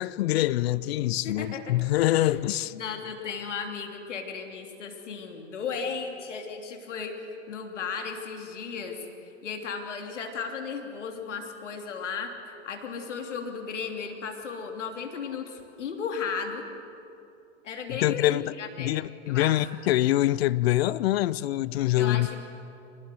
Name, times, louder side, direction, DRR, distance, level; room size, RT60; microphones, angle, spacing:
voice 1, 0.0-2.7 17.9-22.3, left 15 dB, 55° left, 0.7 m, -25 dB
voice 2, 1.2-1.8 2.2-2.3 2.7-7.2 7.5-9.0 9.4-12.3 12.6-16.7 17.6-18.9 19.3-19.6 22.0-22.5, left 5 dB, 75° left, 3.1 m, -35 dB
25.5 x 20.0 x 7.9 m
hypercardioid pair, 110°, 36 cm